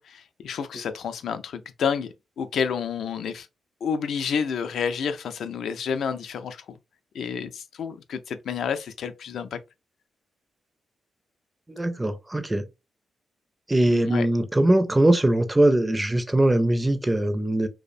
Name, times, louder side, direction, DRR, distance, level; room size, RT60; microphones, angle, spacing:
voice 1, 0.0-2.1 2.4-3.5 3.8-6.6 7.1-9.6 13.9-14.3, left 6 dB, 75° left, 0.3 m, -29 dB
voice 2, 11.7-12.6 13.7-17.7, right 1 dB, 15° right, 0.4 m, -21 dB
2.6 x 2.0 x 2.4 m
cardioid pair, 80°, 0 cm